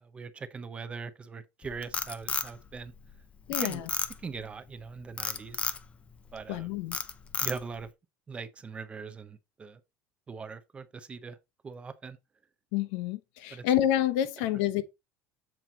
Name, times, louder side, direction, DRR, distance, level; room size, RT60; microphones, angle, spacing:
voice 1, 0.0-2.9 3.6-3.8 4.2-5.8 6.3-6.7 7.4-7.9 8.3-9.8 10.3-11.4 11.6-12.2 13.5-13.6, right 5 dB, 20° right, 0.7 m, -41 dB
Frog, 1.6-3.1 3.5-4.4 5.2-5.8 6.3-6.6 6.9-7.8, left 5 dB, 20° left, 0.6 m, -32 dB
voice 2, 3.5-3.9 6.5-7.0 12.7-14.8, left 12 dB, 75° left, 0.9 m, -28 dB
7.5 x 4.5 x 3.9 m
cardioid pair, 160°, 6 cm